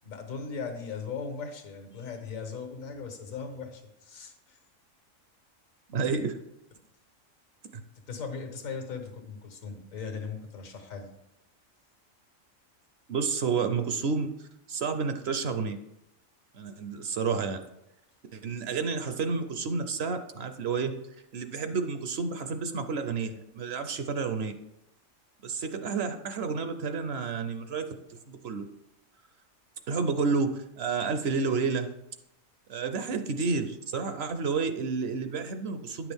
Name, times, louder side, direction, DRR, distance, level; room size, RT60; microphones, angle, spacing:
voice 1, 0.0-4.6 8.1-11.1, left 5 dB, 85° left, 4 dB, 1.6 m, -38 dB
voice 2, 5.9-6.4 13.1-15.8 16.5-17.6 18.3-20.9 21.3-24.5 25.4-28.0 28.3-28.7 29.9-31.9 32.7-36.1, right 5 dB, 60° right, 8 dB, 0.7 m, -30 dB
9.6 x 6.1 x 3.5 m, 0.84 s
omnidirectional pair, 1.4 m